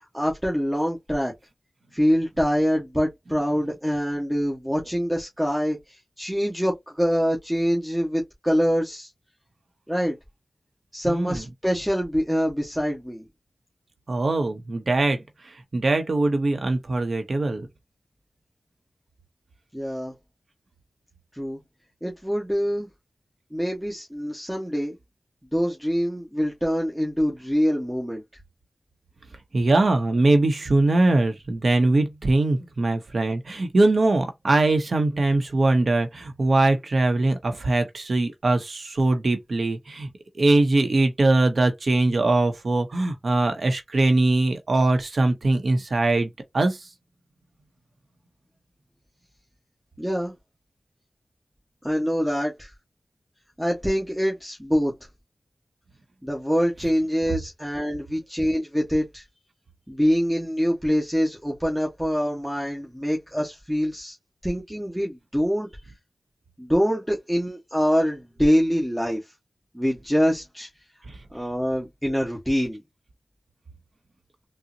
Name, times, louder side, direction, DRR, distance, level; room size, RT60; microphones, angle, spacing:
voice 1, 0.1-1.3 1.9-9.1 9.9-10.2 10.9-13.2 19.7-20.1 21.3-21.6 22.0-22.9 23.5-25.0 25.5-28.2 50.0-50.3 51.8-52.7 53.6-54.9 56.2-59.2 59.9-64.2 64.4-65.7 66.6-69.2 69.7-70.7 71.3-72.8, equal, 5° right, 1.1 m, -25 dB
voice 2, 11.0-11.4 14.1-17.7 29.5-40.1 40.3-46.9 71.1-71.2, right 2 dB, 65° right, 0.7 m, -22 dB
3.7 x 2.0 x 2.6 m
cardioid pair, 45°, 0 cm